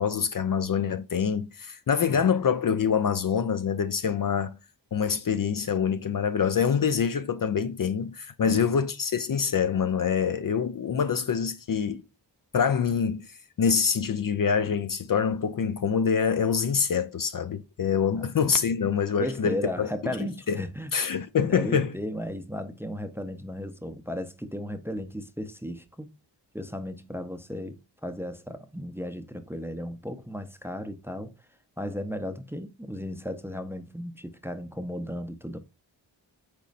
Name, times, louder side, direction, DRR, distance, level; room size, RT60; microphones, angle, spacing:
voice 1, 0.0-4.6 4.9-12.0 12.5-19.9 20.2-20.6 20.9-21.9, left 6 dB, 50° left, 0.5 m, -25 dB
voice 2, 19.2-20.9 21.5-26.1 26.5-31.3 31.8-35.6, equal, 5° right, 0.5 m, -35 dB
5.2 x 4.2 x 2.4 m
cardioid pair, 45°, 43 cm